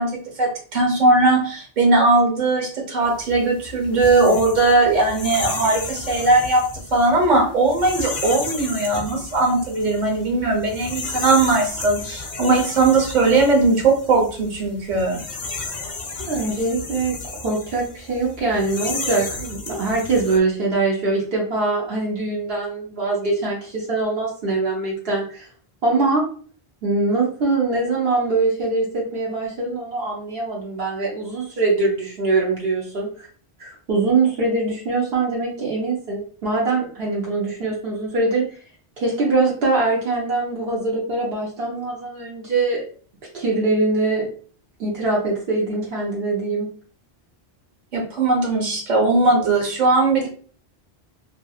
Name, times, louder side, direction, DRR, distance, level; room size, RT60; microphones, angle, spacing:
voice 1, 0.0-15.2 47.9-50.3, right 3 dB, 50° right, 0 dB, 1.0 m, -19 dB
sound 1, 3.1-20.4, left 4 dB, 50° left, 0.6 m, -33 dB
voice 2, 16.2-25.5 25.8-26.3 26.8-33.3 33.6-38.5 39.0-42.9 43.3-44.3 44.8-46.7, right 3 dB, 70° right, -3 dB, 1.0 m, -23 dB
2.9 x 2.6 x 2.3 m, 0.43 s
omnidirectional pair, 1.1 m